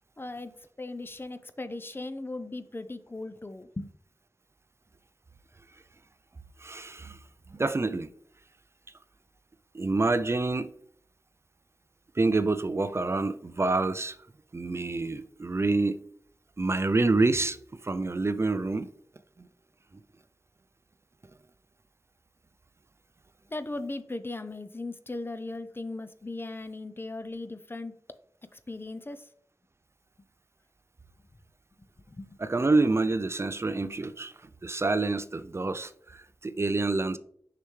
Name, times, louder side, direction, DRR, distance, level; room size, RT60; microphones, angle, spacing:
voice 1, 0.2-0.5 0.8-3.9 23.5-27.9 28.5-29.2 32.1-32.4, left 2 dB, 35° left, 0.5 m, -38 dB
voice 2, 6.6-7.2 7.5-8.1 9.7-10.7 12.1-14.2 14.5-16.0 16.6-17.6 17.8-18.9 19.4-19.5 32.4-37.2, right 3 dB, 40° right, 0.4 m, -27 dB
6.6 x 5.7 x 3.2 m
wide cardioid pair, 60°, 7 cm